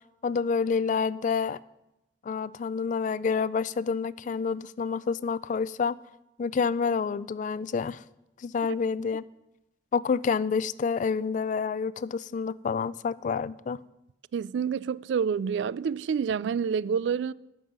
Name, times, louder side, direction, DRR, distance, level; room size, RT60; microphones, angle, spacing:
voice 1, 0.2-1.6 2.2-6.0 6.4-8.0 8.4-9.2 9.9-13.8, left 5 dB, 45° left, 0.3 m, -28 dB
voice 2, 14.3-17.3, right 6 dB, 75° right, 0.3 m, -28 dB
13.0 x 5.5 x 8.8 m
head